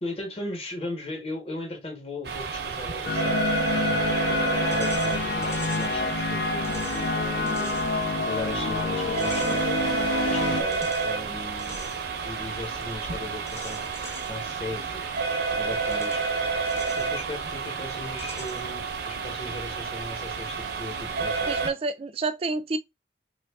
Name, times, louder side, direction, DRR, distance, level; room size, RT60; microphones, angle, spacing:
voice 1, 0.0-7.8 8.1-9.7 10.2-11.9 12.2-13.9 14.3-15.0 15.5-16.2 17.0-21.6, left 2 dB, 35° left, 1.0 m, -37 dB
sound 1, 2.2-21.7, right 5 dB, 65° right, 0.7 m, -30 dB
sound 2, 3.1-10.6, left 4 dB, 65° left, 0.5 m, -28 dB
sound 3, 4.4-18.9, left 1 dB, 15° left, 0.6 m, -46 dB
voice 2, 21.5-22.8, right 3 dB, 35° right, 0.3 m, -29 dB
3.0 x 2.3 x 3.4 m
head